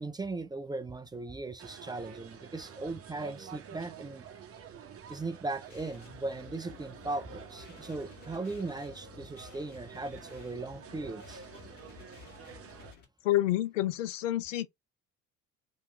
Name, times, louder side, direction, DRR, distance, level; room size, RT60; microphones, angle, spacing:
voice 1, 0.0-4.3 5.1-11.4, right 3 dB, 10° right, 0.4 m, -38 dB
sound 1, 1.6-12.9, right 7 dB, 40° right, 0.8 m, -49 dB
sound 2, 5.7-13.0, left 7 dB, 50° left, 1.8 m, -53 dB
voice 2, 13.2-14.7, left 14 dB, 80° left, 0.5 m, -28 dB
3.2 x 2.9 x 3.1 m
figure-of-eight pair, 55°, 37 cm